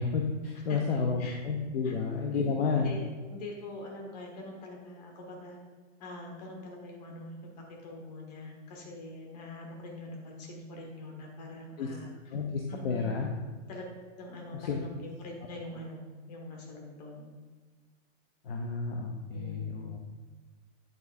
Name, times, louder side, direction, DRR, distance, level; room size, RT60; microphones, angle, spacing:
voice 1, 0.0-2.9 11.8-11.9 12.3-13.3 14.6-14.8 18.4-20.0, left 5 dB, 50° left, 1 dB, 0.8 m, -31 dB
voice 2, 0.7-1.4 1.8-1.9 2.3-5.6 6.0-12.1 12.7-13.1 13.7-13.9 14.2-17.3 19.3-19.9, left 1 dB, 30° left, 1 dB, 1.4 m, -44 dB
9.5 x 8.1 x 2.5 m, 1.4 s
hypercardioid pair, 175°, 39 cm